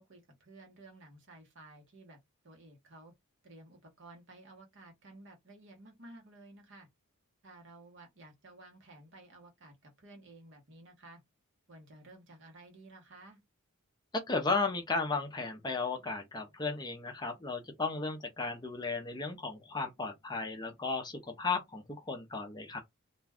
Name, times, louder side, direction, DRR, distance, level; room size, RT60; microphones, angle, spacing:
voice 1, 0.0-2.2 2.4-3.1 3.4-6.9 7.4-11.2 11.7-13.4, right 2 dB, 55° right, 1.0 m, -54 dB
voice 2, 14.1-22.8, left 3 dB, 20° left, 0.5 m, -35 dB
2.4 x 2.2 x 3.4 m
head